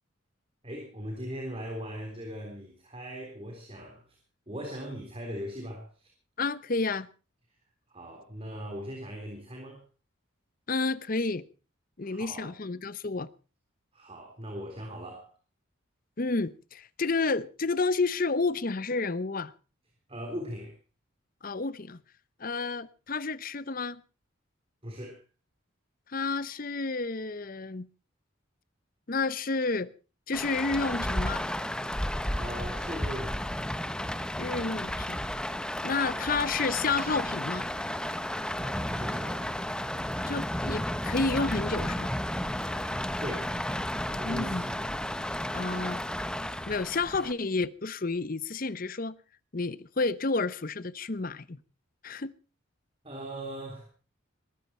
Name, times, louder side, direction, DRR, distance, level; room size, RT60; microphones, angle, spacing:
voice 1, 0.6-4.0 4.5-6.1 7.9-9.8 12.0-12.5 13.9-15.3 20.1-20.7 24.8-25.2 32.3-33.5 38.6-39.5 43.2-43.5 44.1-44.8 53.0-53.9, equal, 25° right, 3.6 m, -39 dB
voice 2, 6.4-7.1 10.7-11.4 12.0-13.3 16.2-19.5 21.4-22.0 22.4-24.0 26.1-27.9 29.1-29.9 30.3-31.4 34.4-35.2 35.8-37.7 40.3-42.1 44.2-44.6 45.5-46.0 46.7-49.1 49.5-51.6 52.0-52.3, left 3 dB, 45° left, 0.8 m, -30 dB
Rain, 30.3-47.3, left 1 dB, 5° left, 0.9 m, -33 dB
21.0 x 14.0 x 4.4 m
head